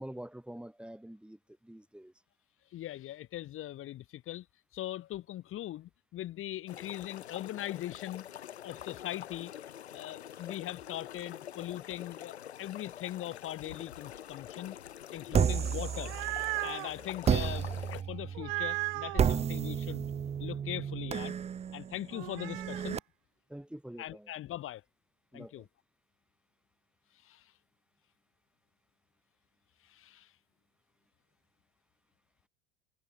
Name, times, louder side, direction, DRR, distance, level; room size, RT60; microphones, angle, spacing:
voice 1, 0.0-2.1 15.3-15.5 23.5-24.3 25.3-25.7, right 1 dB, 5° right, 4.3 m, -46 dB
voice 2, 2.7-4.5 4.7-8.3 8.6-9.5 9.9-14.8 15.1-16.1 16.6-20.1 20.4-21.4 21.7-23.0 24.0-24.8 25.3-25.7 27.1-27.5 29.8-30.3, left 13 dB, 40° left, 2.1 m, -40 dB
sound 1, 6.7-18.0, left 10 dB, 85° left, 0.9 m, -46 dB
sound 2, 15.3-16.7 17.2-23.0, right 7 dB, 20° right, 0.7 m, -32 dB
sound 3, 15.8-16.9 18.4-19.3 22.1-22.9, right 30 dB, 55° right, 0.6 m, -36 dB
hypercardioid pair, 80°, 32 cm